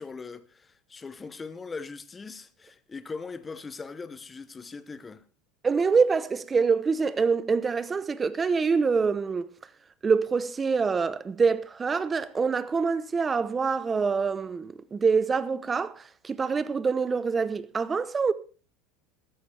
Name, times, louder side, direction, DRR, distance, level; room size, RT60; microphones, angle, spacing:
voice 1, 0.0-5.2, left 4 dB, 20° left, 0.9 m, -40 dB
voice 2, 5.6-9.5 10.0-18.3, right 5 dB, 20° right, 0.8 m, -25 dB
14.0 x 13.5 x 3.4 m
supercardioid pair, 120°, 0 cm